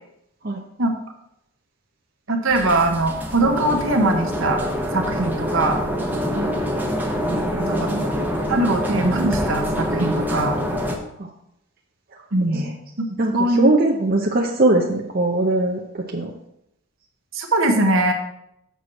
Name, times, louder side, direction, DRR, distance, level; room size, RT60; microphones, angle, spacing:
voice 1, 2.3-4.6 4.9-5.8 7.7-7.9 8.5-10.6 12.3-12.7 13.0-13.7 17.3-18.1, right 2 dB, 65° right, 4 dB, 1.2 m, -21 dB
sound 1, 2.5-11.0, equal, 10° right, 0.9 m, -25 dB
voice 2, 7.3-8.1 11.2-11.3 12.1-12.2 12.5-12.7 13.2-16.3, right 2 dB, 45° right, -1 dB, 0.7 m, -22 dB
6.8 x 4.6 x 6.3 m, 0.79 s
head